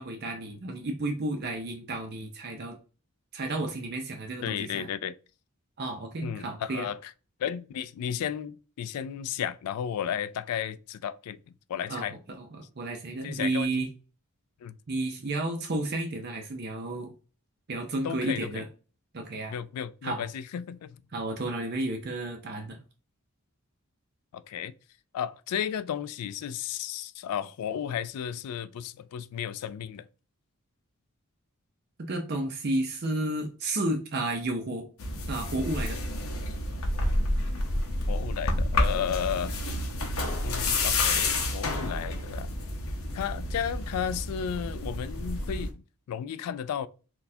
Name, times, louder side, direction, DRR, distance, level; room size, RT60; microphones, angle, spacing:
voice 1, 0.0-2.8 3.3-4.9 5.8-6.9 11.9-13.9 14.9-17.1 17.7-18.7 19.1-19.6 20.0-20.3 21.1-22.8 32.0-34.9 35.3-36.0, right 2 dB, 45° right, 0.5 m, -32 dB
voice 2, 4.4-5.2 6.2-7.1 7.4-11.4 11.7-12.1 13.2-13.8 14.6-14.8 18.0-18.6 19.5-21.0 24.3-24.7 25.1-30.0 38.1-39.5 40.4-42.5 43.1-46.9, left 9 dB, 85° left, 0.3 m, -33 dB
sound 1, 35.0-45.7, left 2 dB, 70° left, 0.7 m, -29 dB
4.0 x 2.3 x 2.7 m
head